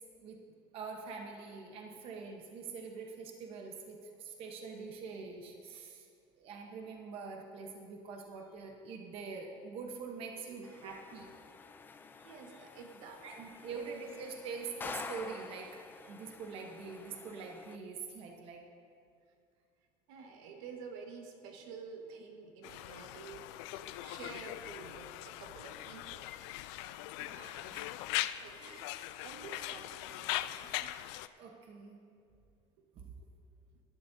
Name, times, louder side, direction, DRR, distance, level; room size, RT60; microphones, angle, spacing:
voice 1, 0.7-6.1 6.4-11.2 13.2-15.7 16.1-18.6 27.2-28.0 28.6-29.0 31.4-32.0 32.9-33.0, right 5 dB, 45° right, 1 dB, 1.0 m, -45 dB
sound 1, 10.6-17.8, left 4 dB, 15° left, 0.4 m, -49 dB
voice 2, 10.6-11.3 12.1-13.2 16.0-16.1 20.1-26.9 27.2-27.7 28.4-30.9 33.7-33.8, right 5 dB, 80° right, 3 dB, 1.5 m, -51 dB
Conversation, 22.6-31.3, left 15 dB, 90° left, 0.4 m, -40 dB
18.0 x 11.5 x 2.7 m, 2.3 s
cardioid pair, 165°, 14 cm